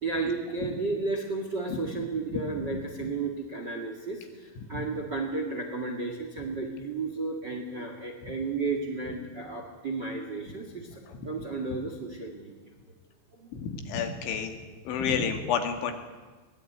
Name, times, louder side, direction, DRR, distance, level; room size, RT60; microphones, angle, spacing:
voice 1, 0.0-12.5 13.3-13.5 15.1-15.2, right 3 dB, 40° right, 4 dB, 1.6 m, -33 dB
voice 2, 13.5-14.6 14.9-15.9, left 6 dB, 85° left, 6 dB, 4.6 m, -29 dB
22.5 x 19.0 x 9.3 m, 1.3 s
omnidirectional pair, 5.3 m